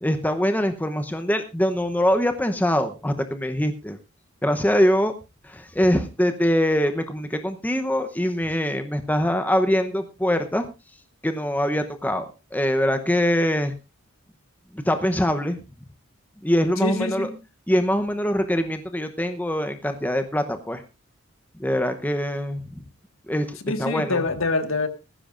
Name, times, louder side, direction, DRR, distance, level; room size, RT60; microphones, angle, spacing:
voice 1, 0.0-4.0 4.4-5.1 5.4-10.7 11.2-12.3 12.5-13.7 14.7-15.6 16.4-17.3 17.7-20.8 21.6-22.8 23.3-24.2, equal, 10° left, 7 dB, 0.8 m, -23 dB
voice 2, 16.8-17.4 23.6-24.9, left 3 dB, 75° left, 7 dB, 1.7 m, -25 dB
18.5 x 15.5 x 2.5 m, 0.28 s
head